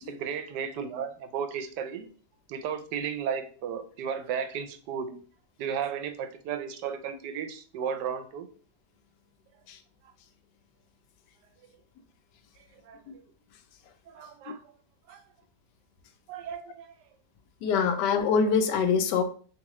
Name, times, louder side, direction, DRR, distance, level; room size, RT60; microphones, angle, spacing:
voice 1, 0.1-2.1 2.5-5.2 5.6-8.5 12.9-13.0 14.1-14.6 15.1-15.2 16.3-16.9, right 7 dB, 80° right, 8 dB, 1.2 m, -34 dB
voice 2, 17.6-19.2, left 6 dB, 85° left, 8 dB, 1.2 m, -24 dB
3.5 x 3.2 x 3.0 m, 0.41 s
omnidirectional pair, 1.8 m